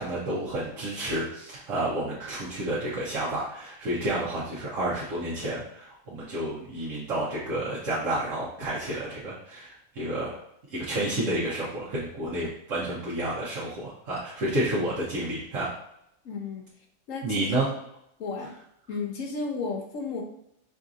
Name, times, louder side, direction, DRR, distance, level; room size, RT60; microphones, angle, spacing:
voice 1, 0.0-10.4 10.7-15.7 17.2-17.7, right 1 dB, 70° right, -9 dB, 1.3 m, -30 dB
voice 2, 16.2-17.7 18.2-18.5 18.9-20.2, left 4 dB, 75° left, 1 dB, 1.2 m, -34 dB
5.7 x 2.7 x 2.5 m, 0.76 s
omnidirectional pair, 1.4 m